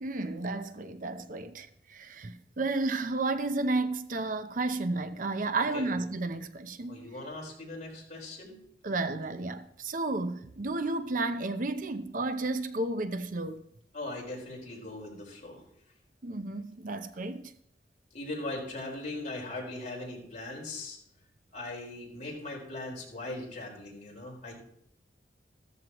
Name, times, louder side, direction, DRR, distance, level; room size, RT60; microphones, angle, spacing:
voice 1, 0.0-7.1 8.8-13.7 16.2-17.4, right 2 dB, 50° right, 0.7 m, -32 dB
voice 2, 6.9-8.6 13.9-15.6 18.1-21.0 21.5-24.5, left 2 dB, 45° left, 4.7 m, -39 dB
15.0 x 13.5 x 3.0 m
head